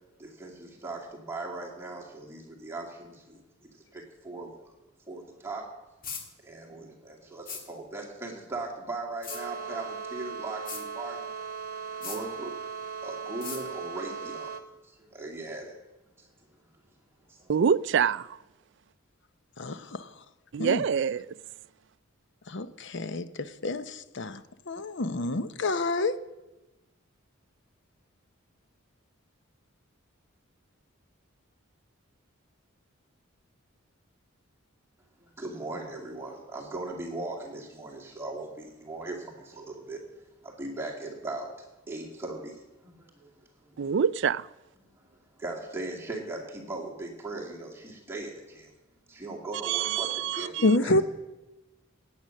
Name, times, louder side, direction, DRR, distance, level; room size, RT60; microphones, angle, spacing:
voice 1, 0.2-4.7 5.1-5.7 6.4-11.3 12.0-12.5 13.0-14.6 14.8-15.7 16.2-16.3 17.3-17.5 35.2-40.0 40.4-43.3 43.6-43.8 45.0-48.7 49.1-51.0, right 2 dB, 10° right, 2.3 m, -39 dB
sound 1, 6.0-6.2 7.5-7.6 9.2-9.4 10.7-10.8 12.0-12.2 13.4-13.6, left 6 dB, 40° left, 2.0 m, -37 dB
sound 2, 9.3-14.6, right 5 dB, 40° right, 1.1 m, -38 dB
voice 2, 17.5-18.4 20.5-21.3 43.8-44.5 49.6-50.7, right 7 dB, 55° right, 0.4 m, -26 dB
voice 3, 19.6-20.1 20.6-20.8 22.5-26.2 50.6-51.0, left 2 dB, 55° left, 0.7 m, -28 dB
17.0 x 8.9 x 6.4 m
head